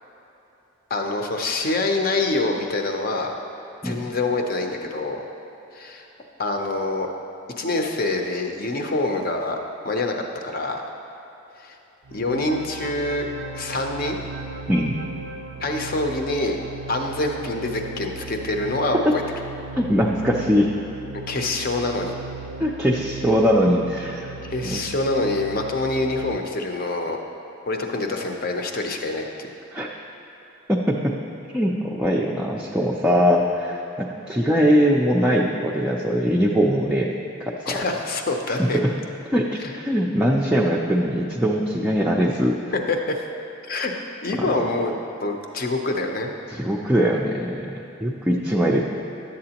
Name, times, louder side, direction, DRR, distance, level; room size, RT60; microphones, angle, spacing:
voice 1, 0.9-3.3 3.8-5.2 5.7-6.1 6.4-7.1 7.6-9.6 9.8-10.2 10.4-10.8 11.6-11.8 12.1-13.3 13.5-14.2 15.6-16.6 16.9-19.2 21.3-22.1 24.4-27.2 27.7-29.5 37.7-38.8 39.6-39.7 42.9-43.3 43.7-43.9 44.2-44.9 45.2-46.3, left 2 dB, 45° left, 3 dB, 0.6 m, -25 dB
sound 1, 12.0-26.4, right 4 dB, 70° right, 0.4 m, -37 dB
voice 2, 14.7-15.0 19.0-19.2 19.8-20.7 22.6-24.3 24.6-24.9 29.7-29.9 30.7-31.2 31.5-37.1 37.4-37.8 38.5-38.9 39.3-42.6 44.4-44.6 46.5-47.7 48.0-48.9, equal, 5° right, -4 dB, 0.4 m, -21 dB
11.5 x 7.7 x 2.9 m, 2.9 s
head